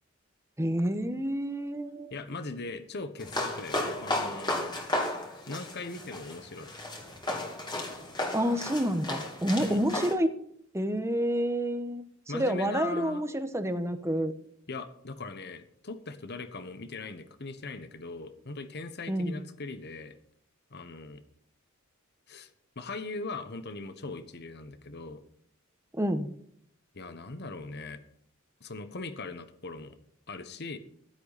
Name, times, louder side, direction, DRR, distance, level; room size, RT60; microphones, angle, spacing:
voice 1, 0.6-2.1 8.3-10.3 10.7-12.0 12.3-14.3 19.1-19.4 25.9-26.3, equal, 15° right, 9 dB, 1.1 m, -28 dB
voice 2, 2.1-4.7 5.5-6.7 9.6-9.8 12.3-13.2 14.7-20.1 20.7-21.2 22.3-22.5 22.7-25.2 26.9-28.0 28.6-30.0 30.3-30.8, left 3 dB, 55° left, 11 dB, 1.2 m, -40 dB
sound 1, 3.2-10.1, left 1 dB, 20° left, 2.8 m, -34 dB
15.5 x 12.0 x 4.2 m, 0.65 s
head